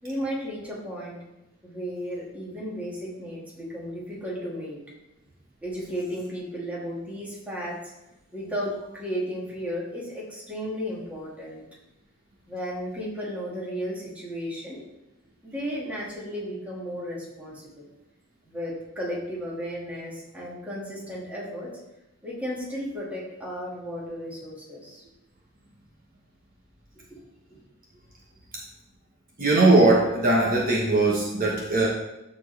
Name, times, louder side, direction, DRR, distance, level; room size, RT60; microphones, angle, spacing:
voice 1, 0.0-1.2 1.6-4.8 5.6-7.9 8.3-11.6 12.5-14.8 15.4-17.8 18.4-21.7 22.2-25.0, equal, 5° right, -5 dB, 2.2 m, -34 dB
voice 2, 29.4-31.9, right 2 dB, 45° right, -3 dB, 1.3 m, -20 dB
13.0 x 4.3 x 3.4 m, 0.92 s
head